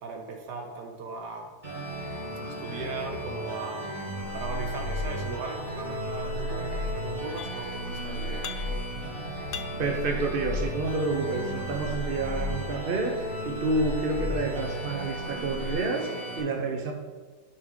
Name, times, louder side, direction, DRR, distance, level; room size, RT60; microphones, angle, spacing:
voice 1, 0.0-1.6 2.4-3.9 4.3-8.8, right 4 dB, 75° right, 3 dB, 1.4 m, -38 dB
sound 1, 1.6-16.4, equal, 20° right, 2.1 m, -36 dB
sound 2, 4.1-15.7, left 1 dB, 35° right, 2.8 m, -37 dB
sound 3, 7.4-7.9 8.2-9.0 9.3-10.9 11.5-12.7, left 9 dB, 75° left, 1.1 m, -43 dB
voice 2, 9.8-16.9, right 3 dB, 55° right, 2 dB, 0.6 m, -29 dB
9.4 x 5.6 x 3.7 m, 1.4 s
omnidirectional pair, 1.9 m